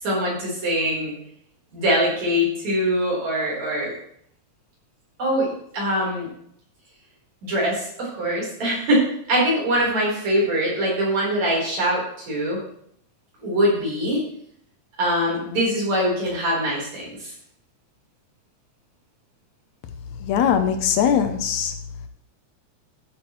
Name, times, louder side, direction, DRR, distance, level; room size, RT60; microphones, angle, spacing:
voice 1, 0.0-1.1 1.7-3.9 5.2-6.3 7.4-12.6 13.4-14.2 15.0-17.3, equal, 65° right, -4 dB, 5.4 m, -23 dB
voice 2, 20.2-21.7, left 8 dB, 75° left, 8 dB, 1.9 m, -21 dB
14.0 x 8.2 x 3.1 m, 0.67 s
omnidirectional pair, 3.4 m